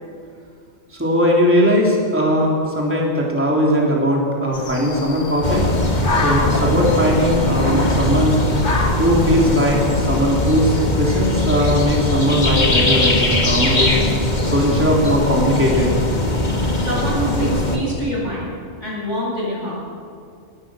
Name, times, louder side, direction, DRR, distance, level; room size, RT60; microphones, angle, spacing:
voice 1, 0.9-5.7 6.2-8.4 9.0-14.0 14.4-15.9, equal, 10° right, -3 dB, 3.4 m, -19 dB
sound 1, 4.5-10.0, left 2 dB, 75° left, 2.4 m, -28 dB
sound 2, 5.4-17.8, left 2 dB, 40° left, 2.1 m, -20 dB
voice 2, 16.8-18.5 18.8-19.7, right 1 dB, 80° right, -5 dB, 7.8 m, -25 dB
22.0 x 20.0 x 6.4 m, 2.3 s
omnidirectional pair, 1.2 m